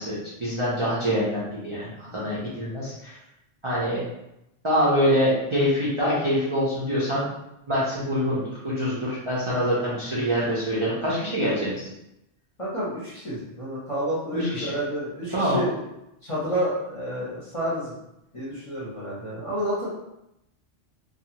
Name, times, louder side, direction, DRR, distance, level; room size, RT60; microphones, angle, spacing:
voice 1, 0.0-3.1 3.6-4.0 4.6-7.3 7.7-11.8 14.3-14.7 15.3-15.6, equal, 35° right, -9 dB, 0.5 m, -25 dB
voice 2, 12.6-15.9 16.2-17.9 18.3-19.9, equal, 30° left, -8 dB, 0.8 m, -30 dB
2.4 x 2.4 x 2.8 m, 0.85 s
omnidirectional pair, 1.2 m